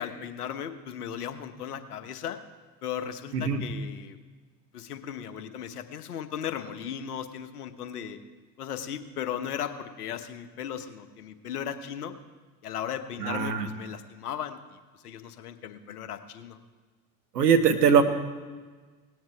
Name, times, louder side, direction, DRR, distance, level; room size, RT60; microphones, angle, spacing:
voice 1, 0.0-2.4 2.8-4.2 4.7-8.2 8.6-12.1 12.6-14.8 15.0-16.6, left 9 dB, 70° left, 10 dB, 1.1 m, -36 dB
voice 2, 13.2-13.7 17.3-18.0, right 6 dB, 75° right, 6 dB, 1.3 m, -21 dB
18.0 x 9.4 x 4.6 m, 1.4 s
figure-of-eight pair, 70°, 48 cm